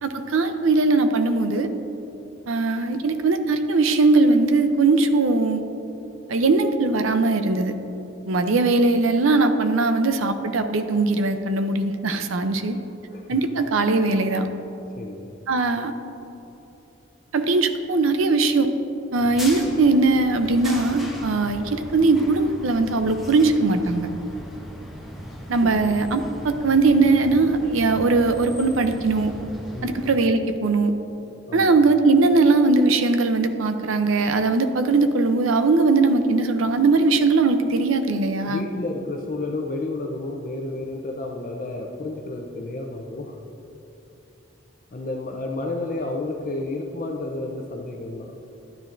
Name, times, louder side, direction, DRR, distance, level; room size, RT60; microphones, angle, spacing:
voice 1, 0.0-1.7 2.5-5.6 6.3-7.7 8.3-12.8 13.3-14.5 15.5-15.9 17.3-18.7 19.1-24.1 25.5-29.3 29.8-30.9 31.5-38.6, right 3 dB, 90° right, 8 dB, 0.6 m, -20 dB
voice 2, 13.1-13.4 15.0-15.3 25.6-25.7 29.7-30.1 31.5-31.8 38.5-43.4 44.9-48.3, left 2 dB, 40° left, 1 dB, 0.6 m, -31 dB
sound 1, 19.1-30.1, equal, ahead, 1.2 m, -38 dB
12.0 x 9.8 x 2.6 m, 3.0 s
head